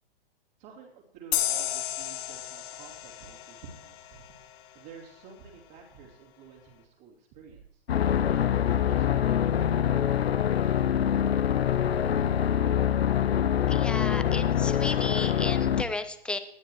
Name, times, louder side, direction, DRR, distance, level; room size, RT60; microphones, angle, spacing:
voice 1, 0.6-7.8 8.3-10.3, right 6 dB, 45° right, -5 dB, 3.0 m, -51 dB
sound 1, 1.3-4.7, left 13 dB, 30° left, 1.3 m, -33 dB
sound 2, 7.9-15.8, left 9 dB, 85° left, 0.6 m, -25 dB
voice 2, 13.7-16.4, left 2 dB, 5° left, 9 dB, 0.6 m, -34 dB
19.0 x 11.5 x 3.1 m, 0.78 s
hypercardioid pair, 130°, 30 cm